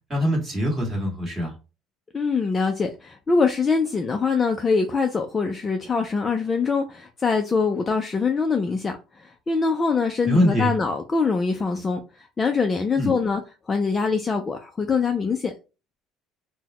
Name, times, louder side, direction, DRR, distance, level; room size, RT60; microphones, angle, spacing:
voice 1, 0.1-1.5 10.2-10.7 12.9-13.1, equal, 15° right, 1.5 m, -23 dB
voice 2, 2.1-13.4 13.7-15.5, left 4 dB, 15° left, 0.3 m, -23 dB
3.9 x 2.1 x 2.9 m
cardioid pair, 165°, 0 cm